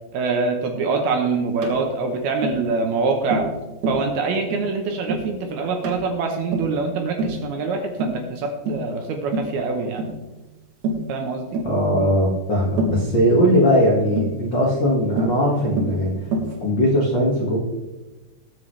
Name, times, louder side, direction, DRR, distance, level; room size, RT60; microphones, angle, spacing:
voice 1, 0.1-3.5 3.9-10.1 11.1-11.6, right 4 dB, 70° right, 3 dB, 2.5 m, -24 dB
Tap, 1.6-1.8 2.4-2.6 3.3-3.6 3.8-4.1 4.5-4.7 5.1-5.3 5.8-6.1 6.5-6.8 7.2-7.4 8.0-8.2 8.7-8.9 9.3-9.6 10.0-10.2 10.8-11.1 11.5-11.7 12.8-13.1 14.2-14.4 15.2-15.4 15.8-16.0 16.3-16.6, right 2 dB, 55° right, 2.4 m, -26 dB
voice 2, 11.6-16.1 16.6-17.6, equal, 75° left, -4 dB, 1.0 m, -19 dB
20.0 x 7.2 x 3.3 m, 1.1 s
omnidirectional pair, 5.4 m